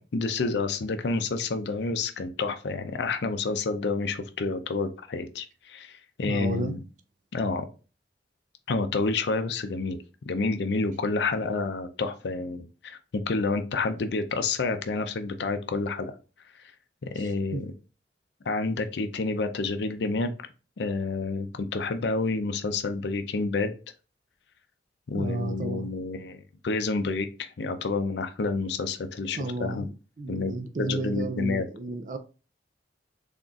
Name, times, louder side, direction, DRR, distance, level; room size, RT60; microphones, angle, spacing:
voice 1, 0.1-6.8 7.3-7.7 8.7-10.0 10.3-16.1 17.0-17.7 18.5-20.3 20.8-23.7 25.1-29.8 30.3-30.5 30.8-31.6, left 3 dB, 75° left, 0.5 m, -29 dB
voice 2, 6.2-6.8 17.1-17.6 25.1-25.9 29.3-32.2, right 2 dB, 45° right, 0.4 m, -33 dB
3.9 x 3.5 x 2.4 m
head